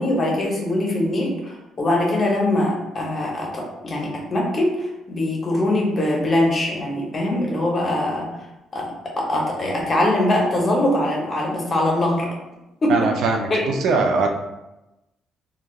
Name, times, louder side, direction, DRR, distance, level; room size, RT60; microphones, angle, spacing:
voice 1, 0.0-8.3 8.7-12.3 12.8-13.1 13.5-13.6, left 1 dB, 35° left, -1 dB, 0.8 m, -22 dB
voice 2, 12.9-14.3, right 4 dB, 70° right, 3 dB, 0.4 m, -21 dB
3.3 x 2.2 x 2.3 m, 0.96 s
cardioid pair, 110°, 0 cm